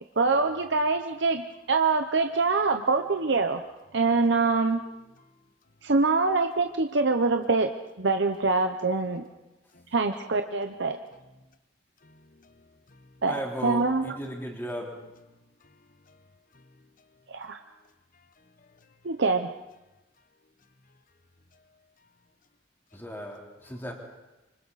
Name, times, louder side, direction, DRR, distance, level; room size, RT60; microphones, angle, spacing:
voice 1, 0.2-1.4 1.7-3.6 3.9-4.8 5.8-7.7 8.0-9.3 9.9-11.0 13.2-14.1 17.3-17.6 19.0-19.5, right 3 dB, 65° right, 6 dB, 0.9 m, -24 dB
voice 2, 12.0-13.2 15.6-17.6 17.8-19.0 20.8-21.0 21.5-22.1 23.6-23.8, left 2 dB, 45° left, 12 dB, 1.0 m, -60 dB
voice 3, 13.3-15.0 22.9-23.9, equal, 10° left, -1 dB, 3.6 m, -35 dB
26.5 x 25.0 x 4.2 m, 1.0 s
head